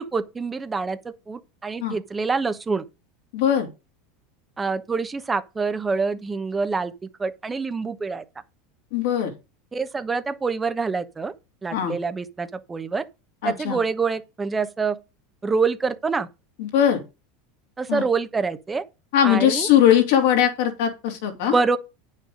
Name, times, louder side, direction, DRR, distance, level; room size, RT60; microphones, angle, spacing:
voice 1, 0.0-2.8 4.6-6.9 7.2-8.2 9.7-11.3 11.6-13.0 13.4-15.0 15.4-16.3 17.8-18.8 19.2-19.7 21.5-21.8, right 4 dB, 20° right, 1.0 m, -26 dB
voice 2, 3.3-3.7 8.9-9.3 11.7-11.9 13.4-13.8 16.6-17.0 17.9-18.0 19.1-21.5, left 10 dB, 70° left, 3.1 m, -20 dB
9.1 x 6.5 x 5.1 m
hypercardioid pair, 95°, 0 cm